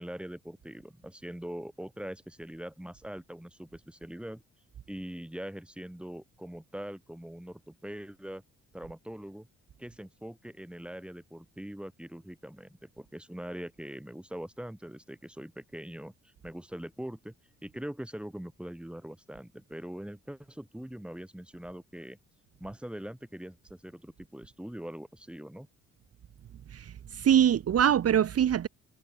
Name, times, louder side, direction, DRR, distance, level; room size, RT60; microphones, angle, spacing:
voice 1, 0.0-4.4 4.9-8.4 8.7-9.5 9.8-17.3 17.6-22.2 22.6-25.7, right 1 dB, 5° right, 4.7 m, -42 dB
voice 2, 26.7-28.7, right 9 dB, 55° right, 1.3 m, -24 dB
cardioid pair, 90°, 30 cm